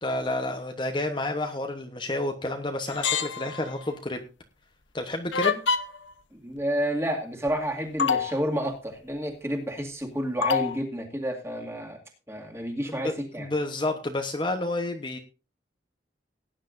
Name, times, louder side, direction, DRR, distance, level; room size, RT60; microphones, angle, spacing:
voice 1, 0.0-4.2 4.9-5.6 12.9-15.2, left 2 dB, 25° left, 5 dB, 1.0 m, -30 dB
sound 1, 2.9-3.8 5.3-6.1 7.5-7.6 8.0-8.4 10.4-10.8, left 6 dB, 90° left, 1.0 m, -26 dB
voice 2, 6.3-12.0 12.3-13.5, equal, 15° right, 2 dB, 2.2 m, -30 dB
18.5 x 10.0 x 2.6 m, 0.31 s
head